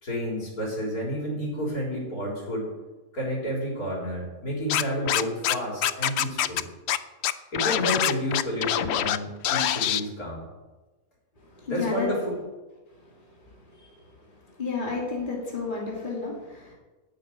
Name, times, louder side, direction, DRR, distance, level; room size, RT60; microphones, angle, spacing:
voice 1, 0.0-2.7 3.1-6.6 7.5-10.4 11.7-12.4, equal, 85° left, -3 dB, 4.4 m, -30 dB
Scratching (performance technique), 4.7-5.5 5.8-6.6 6.9-7.0 7.2-9.2 9.4-10.0, left 11 dB, 65° left, 0.7 m, -24 dB
voice 2, 11.4-12.1 13.7-13.9 14.6-16.7, left 4 dB, 35° left, -2 dB, 2.8 m, -31 dB
12.0 x 6.6 x 9.1 m, 1.2 s
omnidirectional pair, 1.5 m